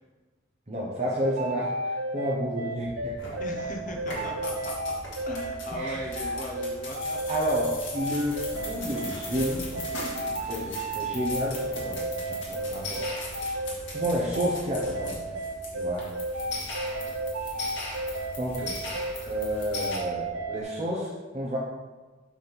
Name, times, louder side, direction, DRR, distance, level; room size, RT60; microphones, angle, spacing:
voice 1, 0.7-3.4 5.7-6.1 7.3-9.9 10.5-13.0 13.9-15.4 15.7-16.1 18.4-18.8 19.2-21.6, equal, 30° right, -5 dB, 1.1 m, -31 dB
sound 1, 1.2-20.6, right 1 dB, 75° right, 0.8 m, -32 dB
sound 2, 2.7-20.5, right 1 dB, ahead, 1.5 m, -47 dB
sound 3, 3.2-3.6 4.0-20.0, left 2 dB, 60° left, 2.0 m, -39 dB
voice 2, 3.4-4.9 5.2-7.2 16.8-17.2, left 1 dB, 40° left, 2 dB, 1.0 m, -38 dB
8.3 x 3.7 x 6.0 m, 1.3 s
head